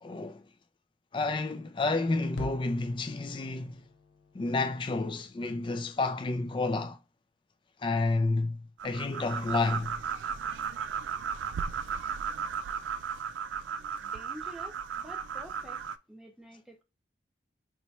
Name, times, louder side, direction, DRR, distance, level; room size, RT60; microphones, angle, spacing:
voice 1, 0.0-0.4 1.1-3.8 4.3-7.0 7.8-10.0, left 3 dB, 25° left, 0.3 m, -30 dB
sound 1, 2.4-6.7, left 3 dB, 80° left, 0.5 m, -47 dB
sound 2, 8.8-16.0, right 7 dB, 90° right, 0.3 m, -35 dB
voice 2, 14.0-15.8 16.1-16.8, equal, ahead, 0.7 m, -48 dB
3.0 x 2.2 x 4.2 m
head